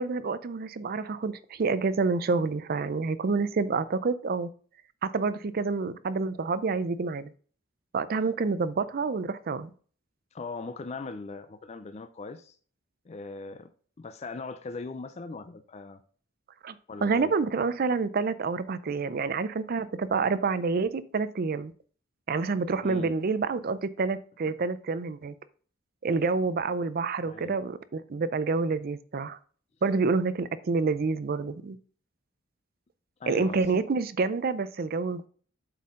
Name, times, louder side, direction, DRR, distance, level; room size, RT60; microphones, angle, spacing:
voice 1, 0.0-4.5 5.0-7.3 7.9-9.7 16.6-16.8 17.0-21.7 22.3-25.3 26.0-29.4 29.8-31.8 33.3-35.3, right 4 dB, 50° right, 0.4 m, -28 dB
voice 2, 10.3-12.5 13.1-13.7 14.0-16.0 16.9-17.3 22.8-23.1 27.2-27.6 33.2-33.8, left 3 dB, 35° left, 0.4 m, -39 dB
7.5 x 4.3 x 3.6 m
head